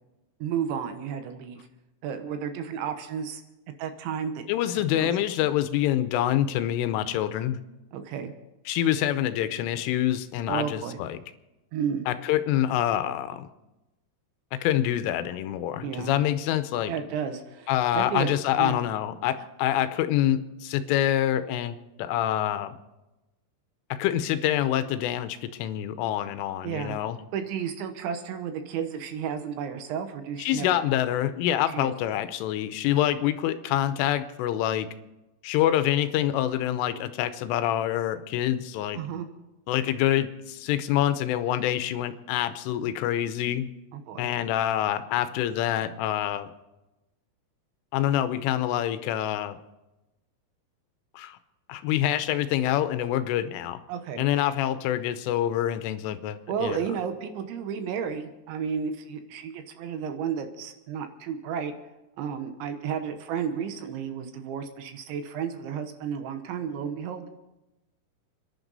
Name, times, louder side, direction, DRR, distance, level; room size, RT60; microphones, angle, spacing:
voice 1, 0.4-1.6 2.0-3.4 3.8-4.5 5.0-5.1 7.9-8.3 10.5-11.0 11.7-12.0 15.8-16.1 16.9-18.3 18.6-18.8 26.6-27.0 27.3-30.8 31.7-31.9 38.9-39.3 43.9-44.3 53.9-54.3 56.5-61.7 62.2-67.3, right 7 dB, 75° right, 7 dB, 3.2 m, -32 dB
voice 2, 4.5-7.6 8.7-11.2 12.1-13.5 14.5-16.9 17.7-22.8 24.0-27.2 30.4-34.9 35.4-39.0 39.7-43.7 44.2-46.5 47.9-49.6 51.2-51.4 51.7-53.8 54.2-56.8, left 12 dB, 80° left, 11 dB, 3.2 m, -26 dB
29.0 x 11.0 x 4.0 m, 0.98 s
omnidirectional pair, 5.8 m